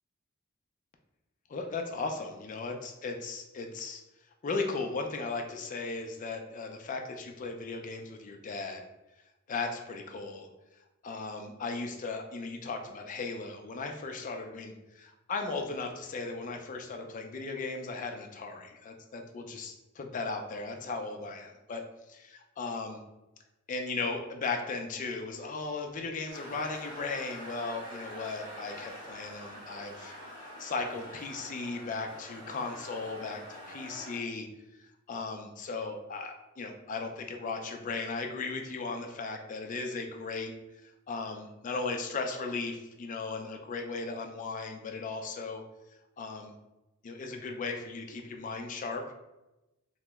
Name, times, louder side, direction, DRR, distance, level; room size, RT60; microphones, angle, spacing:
voice 1, 1.5-4.0 4.4-8.8 9.5-10.5 11.0-23.0 23.7-30.1 30.6-34.5 35.1-40.5 40.8-45.6 46.2-46.5 47.0-49.1, left 3 dB, 40° left, 4 dB, 0.3 m, -37 dB
sound 1, 26.3-34.2, equal, 45° right, 1.4 m, -45 dB
2.8 x 2.0 x 3.3 m, 0.99 s
head